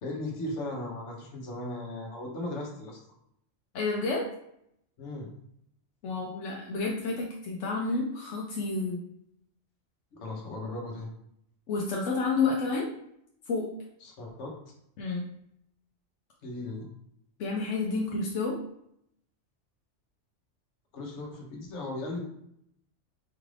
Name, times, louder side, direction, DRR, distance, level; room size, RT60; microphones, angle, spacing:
voice 1, 0.0-3.0 5.0-5.3 10.1-11.1 14.0-14.6 16.4-16.9 20.9-22.2, left 2 dB, 70° left, -1 dB, 1.3 m, -37 dB
voice 2, 3.7-4.3 6.0-9.0 11.7-12.9 13.5-13.7 15.0-15.3 17.4-18.6, left 3 dB, 85° left, -2 dB, 1.0 m, -30 dB
4.6 x 2.5 x 3.2 m, 0.73 s
omnidirectional pair, 1.2 m